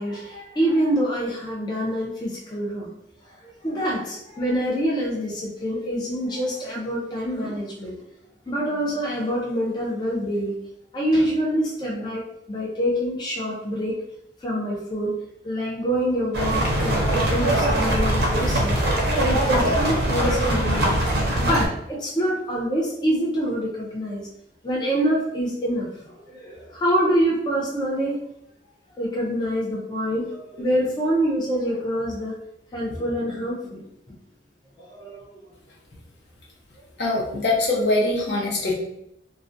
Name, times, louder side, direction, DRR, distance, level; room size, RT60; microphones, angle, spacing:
voice 1, 0.0-2.9 3.4-7.9 8.5-10.6 10.9-12.2 12.5-13.9 14.4-15.1 15.4-18.8 19.2-21.0 21.4-24.3 24.6-28.2 29.0-32.3 32.7-33.8 34.8-35.4, equal, 25° left, -4 dB, 0.4 m, -26 dB
sound 1, 16.3-21.7, right 1 dB, 65° right, 0.6 m, -22 dB
voice 2, 37.0-38.7, left 2 dB, 70° left, -3 dB, 0.7 m, -22 dB
2.3 x 2.1 x 2.5 m, 0.78 s
head